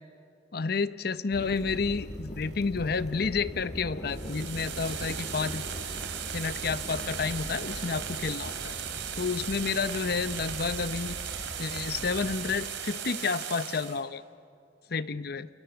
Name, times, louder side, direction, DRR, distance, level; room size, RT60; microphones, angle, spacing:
voice 1, 0.5-5.6 6.3-8.8 9.2-11.2 11.6-14.2 14.9-15.5, left 4 dB, 55° left, 14 dB, 0.7 m, -30 dB
sound 1, 1.3-12.6, equal, 40° left, 4.8 m, -41 dB
sound 2, 4.1-14.0, right 8 dB, 75° right, 3.1 m, -37 dB
29.5 x 27.5 x 7.0 m, 2.4 s
head